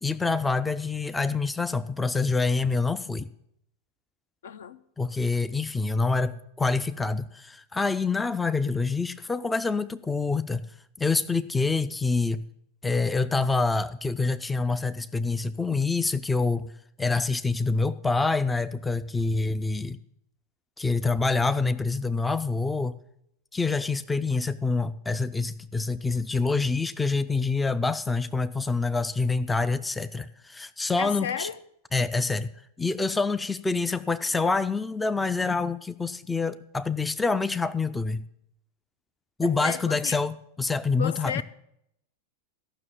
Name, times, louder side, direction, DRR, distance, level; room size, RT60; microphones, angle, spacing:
voice 1, 0.0-3.3 5.0-10.6 11.0-12.4 12.8-16.7 17.0-20.0 20.8-23.0 23.5-31.5 31.9-32.5 32.8-38.2 39.4-41.4, left 3 dB, 10° left, 0.4 m, -26 dB
voice 2, 4.4-4.8 31.0-31.6 39.4-40.2 41.0-41.4, left 8 dB, 60° left, 0.6 m, -33 dB
14.0 x 6.1 x 7.2 m
figure-of-eight pair, 90°, 0 cm